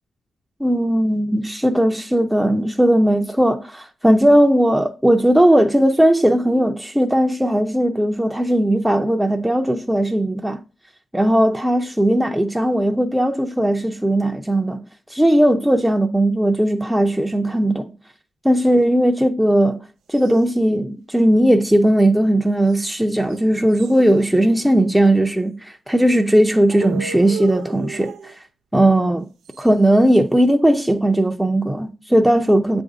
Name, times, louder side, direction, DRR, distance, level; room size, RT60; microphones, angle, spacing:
voice 1, 0.6-10.6 11.1-14.8 15.1-17.9 18.4-19.8 20.1-28.4 28.7-29.3 29.6-32.8, right 1 dB, 5° right, 0.6 m, -17 dB
sound 1, 20.1-20.5 22.7-23.0 23.3-23.4 23.7-25.0 26.7-28.4 29.4-30.1, right 7 dB, 75° right, 0.4 m, -36 dB
7.6 x 2.6 x 4.9 m
hypercardioid pair, 40°, 0 cm